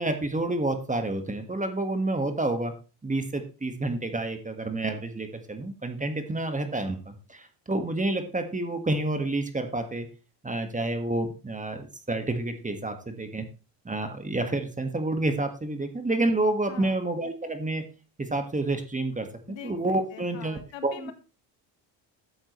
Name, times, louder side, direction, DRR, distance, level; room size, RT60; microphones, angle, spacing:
voice 1, 0.0-2.7 3.0-10.1 10.4-13.4 13.8-17.8 18.2-21.1, right 2 dB, 15° right, 7 dB, 1.6 m, -29 dB
voice 2, 19.5-21.1, left 10 dB, 65° left, 9 dB, 1.6 m, -43 dB
12.5 x 7.8 x 3.1 m, 0.33 s
cardioid pair, 90°, 48 cm